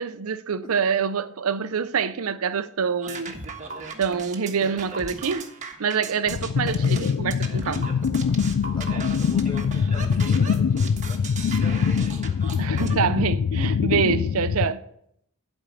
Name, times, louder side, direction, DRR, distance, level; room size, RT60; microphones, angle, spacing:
voice 1, 0.0-3.3 4.0-5.5 5.8-7.9 12.6-14.8, right 6 dB, 70° right, 0.6 m, -26 dB
sound 1, 3.0-13.0, right 3 dB, 35° right, 1.4 m, -37 dB
sound 2, 6.3-14.7, left 6 dB, 70° left, 0.4 m, -23 dB
voice 2, 8.7-12.8, left 2 dB, 20° left, 1.4 m, -42 dB
12.0 x 5.3 x 8.4 m
head